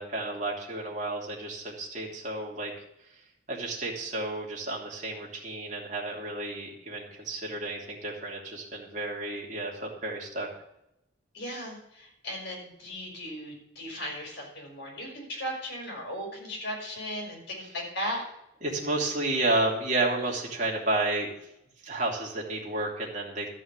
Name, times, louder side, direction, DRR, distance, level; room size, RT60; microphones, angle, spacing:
voice 1, 0.0-2.7 3.5-10.5 18.6-21.3 21.8-23.5, right 2 dB, 40° right, -2 dB, 2.9 m, -31 dB
voice 2, 11.3-18.2, equal, 60° left, -1 dB, 5.3 m, -37 dB
13.0 x 5.6 x 8.8 m, 0.83 s
head